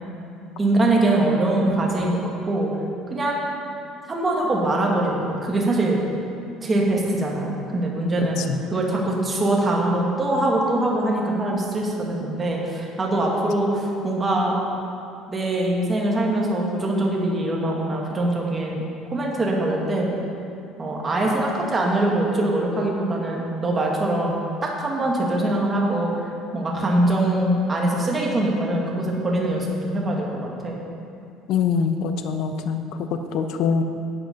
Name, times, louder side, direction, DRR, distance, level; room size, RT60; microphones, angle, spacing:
voice 1, 0.6-2.7 3.1-3.4 4.1-6.0 6.6-8.4 8.7-14.6 15.3-20.1 20.8-26.1 26.5-30.8, right 1 dB, 20° right, -2 dB, 1.6 m, -23 dB
voice 2, 31.5-33.8, left 6 dB, 60° left, 7 dB, 0.7 m, -24 dB
11.0 x 8.1 x 5.2 m, 2.5 s
cardioid pair, 155°, 0 cm